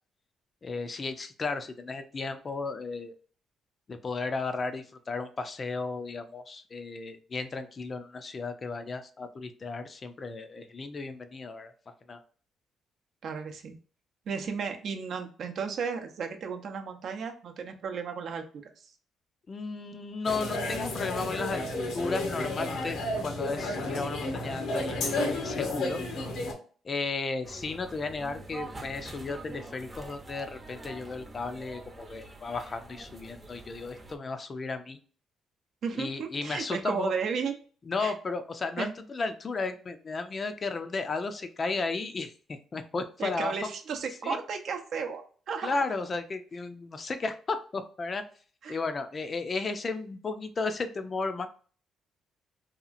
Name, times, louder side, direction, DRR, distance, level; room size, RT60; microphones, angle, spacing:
voice 1, 0.6-3.1 3.9-11.7 12.1-12.2 19.5-21.7 21.9-26.0 26.8-35.0 35.9-37.1 37.9-43.5 44.2-44.4 45.6-48.2 48.7-51.5, left 3 dB, 35° left, 9 dB, 0.4 m, -34 dB
voice 2, 13.2-13.7 14.3-18.4 18.8-18.9 35.8-37.5 38.0-38.1 38.8-38.9 43.2-45.9 48.6-48.8, right 6 dB, 65° right, 5 dB, 0.5 m, -34 dB
sound 1, 20.2-26.5, left 2 dB, 80° left, 0.8 m, -32 dB
sound 2, 27.4-34.2, right 2 dB, 25° right, 0.6 m, -45 dB
2.8 x 2.3 x 2.5 m, 0.42 s
cardioid pair, 90°, 0 cm